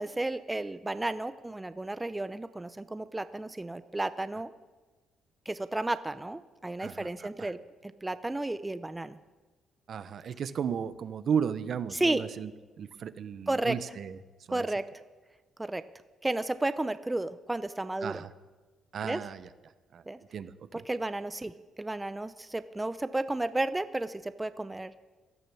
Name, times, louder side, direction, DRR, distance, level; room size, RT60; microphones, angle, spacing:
voice 1, 0.0-4.5 5.5-9.2 11.9-12.2 13.5-13.7 14.5-14.8 15.6-15.8 16.2-18.2 19.0-19.2 20.1-20.2 20.7-21.5 21.8-24.9, right 2 dB, 15° right, 12 dB, 0.7 m, -32 dB
voice 2, 6.8-7.5 9.9-12.5 12.8-14.2 14.5-14.7 18.0-18.3 18.9-19.5 19.9-20.0 20.3-20.8, right 7 dB, 60° right, 13 dB, 0.9 m, -34 dB
16.5 x 11.5 x 7.0 m, 1.2 s
cardioid pair, 90°, 0 cm